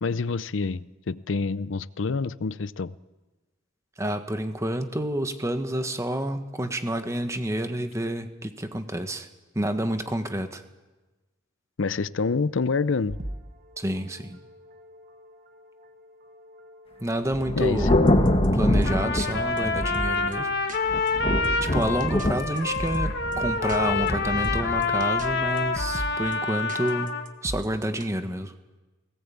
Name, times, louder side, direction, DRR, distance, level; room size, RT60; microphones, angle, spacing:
voice 1, 0.0-3.0 11.8-13.2 17.5-18.2, left 4 dB, 75° left, 17 dB, 0.6 m, -27 dB
voice 2, 4.0-9.3 9.5-10.6 13.8-14.4 17.0-18.0 18.5-20.5 20.8-20.9 21.6-27.2 27.4-28.5, right 1 dB, 15° right, 8 dB, 1.3 m, -29 dB
sound 1, 13.1-18.9 19.2-19.3 19.6-20.3 20.7-20.8 21.1-21.2 21.4-23.4 23.7-23.8 24.1-24.2 24.4-25.3 25.6-26.4 26.7-28.1, right 1 dB, 45° right, 1.3 m, -37 dB
Thunder, 17.3-20.4 20.9-26.2, left 1 dB, 30° left, 1.4 m, -26 dB
Trumpet, 18.8-27.3, left 4 dB, 55° left, 1.8 m, -27 dB
18.5 x 18.5 x 8.5 m, 1.2 s
head